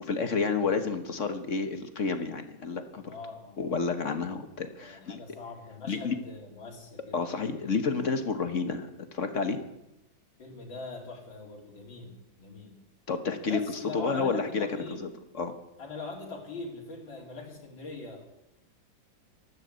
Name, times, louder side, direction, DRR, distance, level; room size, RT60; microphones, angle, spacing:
voice 1, 0.0-3.2 3.6-5.2 5.9-6.2 7.1-9.6 13.1-13.6 13.9-14.7 15.0-15.1 15.3-15.5, left 4 dB, 45° left, 8 dB, 1.3 m, -30 dB
voice 2, 3.0-3.8 4.8-7.2 10.4-12.8 13.5-15.1 15.8-18.3, left 3 dB, 80° left, -2 dB, 4.0 m, -42 dB
13.0 x 11.5 x 8.1 m, 0.89 s
omnidirectional pair, 2.1 m